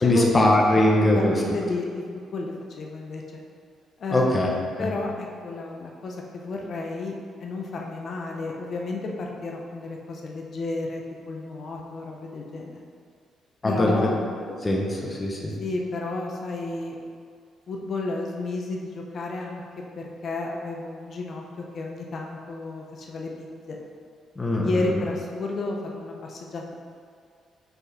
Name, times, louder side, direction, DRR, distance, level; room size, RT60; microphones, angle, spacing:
voice 1, 0.0-1.4 4.1-4.5 4.8-4.9 13.6-13.9 14.6-15.5 24.4-25.0, left 1 dB, 25° left, -1 dB, 1.1 m, -21 dB
voice 2, 1.1-2.0 2.3-3.4 4.0-4.4 4.8-7.1 7.4-12.8 13.6-14.2 15.6-17.0 17.7-21.4 21.7-23.8 24.6-26.7, left 3 dB, 55° left, 0 dB, 0.8 m, -32 dB
5.3 x 4.4 x 4.3 m, 2.2 s
cardioid pair, 90°, 0 cm